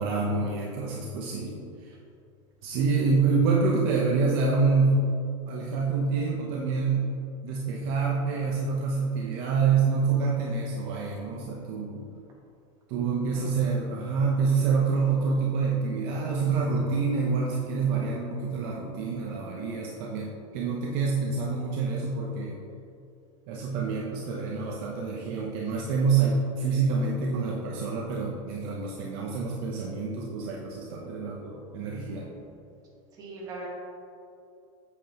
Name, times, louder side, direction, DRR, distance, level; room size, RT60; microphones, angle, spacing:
voice 1, 0.0-1.9 2.6-5.0 5.5-7.1 7.4-12.1 12.9-22.6 23.5-32.3, right 4 dB, 45° right, -2 dB, 0.8 m, -27 dB
voice 2, 13.2-13.9 32.1-32.3 33.1-33.7, right 2 dB, 20° right, -4 dB, 1.5 m, -43 dB
8.4 x 7.7 x 2.9 m, 2.6 s
supercardioid pair, 175°, 17 cm